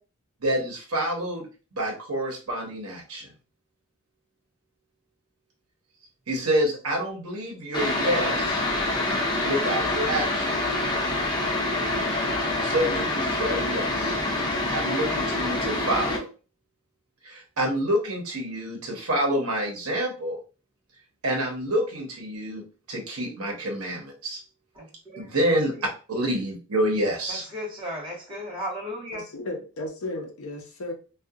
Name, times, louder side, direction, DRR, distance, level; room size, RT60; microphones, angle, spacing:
voice 1, 0.4-3.3 6.3-8.6 9.4-10.5 12.6-14.2 14.7-16.3 17.2-20.4 21.2-22.6 22.9-24.4 25.2-27.4, right 1 dB, 85° right, 0.9 m, -28 dB
sound 1, 7.7-16.2, left 2 dB, 20° left, 0.6 m, -26 dB
voice 2, 24.7-25.9 27.3-29.3, equal, 25° right, 1.0 m, -36 dB
voice 3, 29.1-30.9, left 2 dB, 75° left, 0.6 m, -34 dB
2.7 x 2.3 x 2.4 m
head